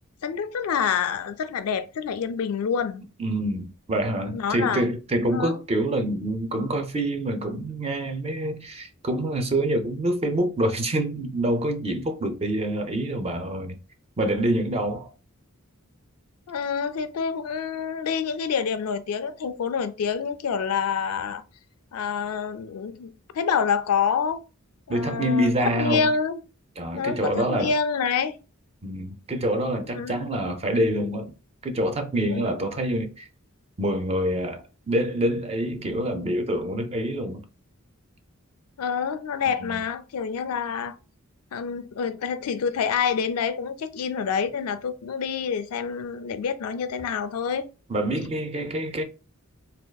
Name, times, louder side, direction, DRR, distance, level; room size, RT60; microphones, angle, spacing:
voice 1, 0.2-3.0 4.3-4.8 5.3-5.6 16.5-21.4 21.9-24.4 24.9-26.4 27.0-28.4 29.7-30.2 32.3-32.6 38.8-41.0 41.5-47.6, left 6 dB, 85° left, 0.4 m, -27 dB
voice 2, 3.2-13.8 14.2-15.1 24.9-26.1 26.8-27.7 28.8-31.3 31.6-33.3 33.8-37.5 39.6-39.8 47.9-49.0, right 1 dB, 30° right, 0.5 m, -26 dB
3.4 x 2.3 x 2.2 m
head